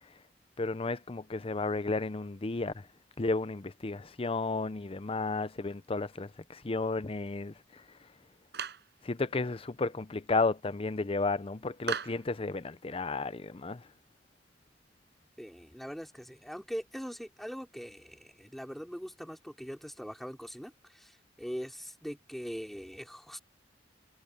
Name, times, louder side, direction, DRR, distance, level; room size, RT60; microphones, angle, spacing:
voice 1, 0.6-2.7 3.2-7.5 9.0-13.8, left 3 dB, 30° left, 0.6 m, -33 dB
Clapping, 8.5-8.9 11.9-12.3, right 6 dB, 65° right, 6.4 m, -36 dB
voice 2, 15.4-23.4, equal, ahead, 4.0 m, -42 dB
head